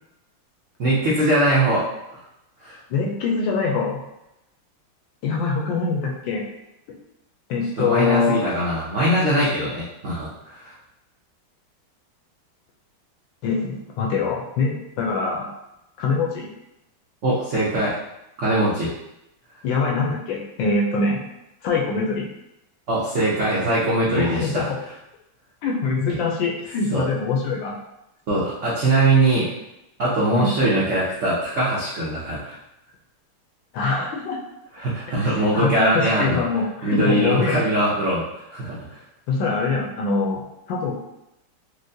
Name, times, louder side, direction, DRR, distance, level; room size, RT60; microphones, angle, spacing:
voice 1, 0.8-1.8 2.6-2.8 7.8-10.7 17.2-18.0 18.4-18.9 22.9-24.7 26.1-26.2 26.9-27.0 28.3-29.5 30.0-32.6 34.8-36.4 36.8-38.8, right 1 dB, 80° right, -8 dB, 0.6 m, -21 dB
voice 2, 2.9-4.0 5.2-6.4 7.5-8.5 13.4-15.5 16.0-16.5 19.6-21.2 21.6-22.3 24.2-24.8 25.6-27.7 30.3-30.5 33.7-34.4 35.3-37.6 39.3-40.4 40.7-40.9, left 4 dB, 75° left, -1 dB, 1.2 m, -23 dB
4.5 x 2.1 x 2.6 m, 0.88 s
omnidirectional pair, 2.3 m